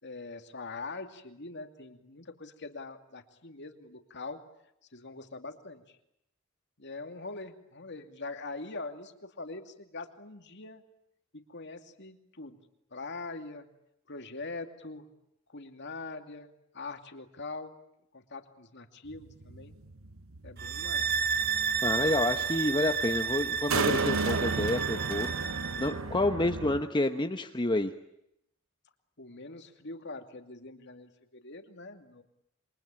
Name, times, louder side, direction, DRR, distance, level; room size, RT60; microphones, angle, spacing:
voice 1, 0.0-4.4 4.9-6.0 6.8-10.8 11.3-12.6 12.9-13.7 14.1-15.0 15.5-17.8 18.1-19.8 20.4-21.1 29.2-32.2, left 3 dB, 55° left, 7 dB, 2.6 m, -43 dB
sound 1, 19.1-26.8, right 4 dB, 70° right, 1.1 m, -34 dB
sound 2, 20.6-26.0, right 6 dB, 45° right, 1.0 m, -31 dB
voice 2, 21.8-27.9, left 2 dB, 20° left, 6 dB, 1.1 m, -29 dB
27.5 x 23.5 x 9.0 m, 0.80 s
head